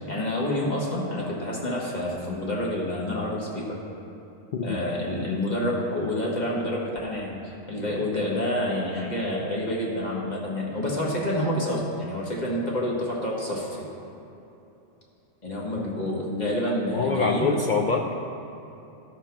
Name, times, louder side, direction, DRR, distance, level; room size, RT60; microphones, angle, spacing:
voice 1, 0.1-3.8 4.6-13.8 15.4-17.6, left 1 dB, 35° left, -3 dB, 1.5 m, -28 dB
voice 2, 16.3-18.2, left 4 dB, 60° left, 2 dB, 0.5 m, -26 dB
12.5 x 4.5 x 5.9 m, 2.9 s
omnidirectional pair, 1.3 m